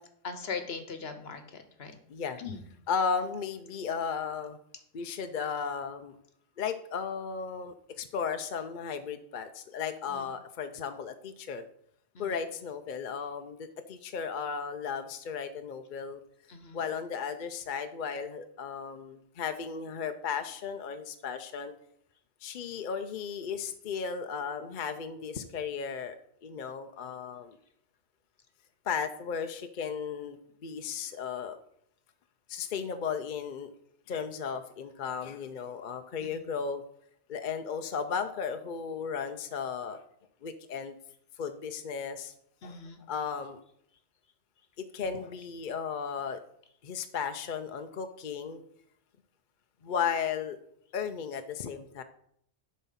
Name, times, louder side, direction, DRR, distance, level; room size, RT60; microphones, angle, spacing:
voice 1, 0.2-2.0 2.4-2.6 10.1-10.3 12.1-12.3 16.5-16.8 36.2-36.3 42.6-43.0, left 5 dB, 70° left, 8 dB, 1.3 m, -40 dB
voice 2, 2.9-4.6 4.9-6.2 6.6-11.7 12.2-16.2 16.7-21.7 22.4-26.2 26.4-27.6 28.9-31.6 32.5-33.7 34.1-36.8 37.3-40.0 40.4-40.9 41.4-42.3 42.6-42.8 43.1-43.6 44.8-46.4 46.8-48.6 49.8-50.6 50.9-52.0, left 6 dB, 55° left, 8 dB, 0.7 m, -35 dB
10.5 x 4.3 x 5.6 m, 0.70 s
omnidirectional pair, 1.1 m